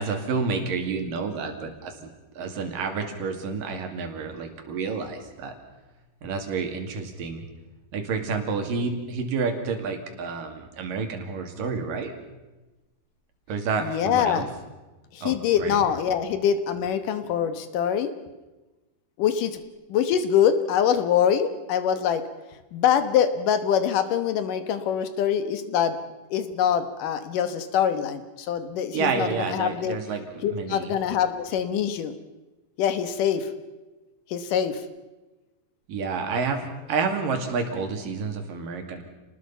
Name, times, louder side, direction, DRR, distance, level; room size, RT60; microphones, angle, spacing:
voice 1, 0.0-5.5 6.2-7.4 7.9-12.1 13.5-14.5 15.2-15.8 28.9-30.2 30.5-30.9 35.9-39.1, right 5 dB, 55° right, 4 dB, 3.8 m, -29 dB
voice 2, 13.8-14.4 15.1-18.1 19.2-19.6 19.9-22.2 22.7-26.0 26.3-30.0 30.4-32.2 32.8-33.5 34.3-34.8, left 8 dB, 65° left, 10 dB, 2.3 m, -24 dB
29.5 x 19.5 x 5.6 m, 1.1 s
omnidirectional pair, 5.0 m